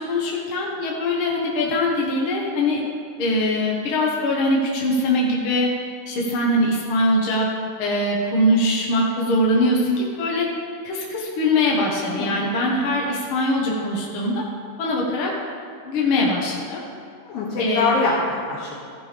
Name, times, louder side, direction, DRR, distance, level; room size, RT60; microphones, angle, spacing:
voice 1, 0.0-2.8 3.2-5.7 6.1-7.5 7.8-10.5 10.8-14.4 14.8-15.3 15.8-16.8 17.6-17.9, left 1 dB, 55° left, -3 dB, 1.5 m, -22 dB
voice 2, 12.0-12.4 17.2-18.8, left 3 dB, 85° left, -7 dB, 3.4 m, -24 dB
15.0 x 10.5 x 3.4 m, 2.4 s
omnidirectional pair, 4.0 m